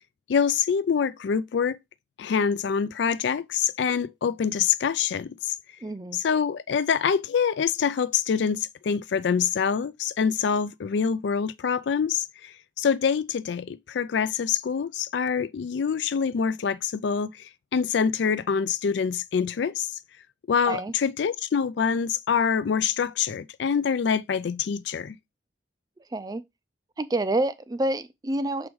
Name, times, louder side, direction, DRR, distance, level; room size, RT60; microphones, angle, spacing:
voice 1, 0.3-1.8 2.2-5.5 6.1-19.9 20.5-25.2, left 6 dB, 70° left, 0.4 m, -25 dB
voice 2, 5.8-6.2 20.7-20.9 26.1-26.4 27.0-28.7, right 1 dB, 20° right, 0.4 m, -28 dB
6.1 x 4.8 x 3.1 m
head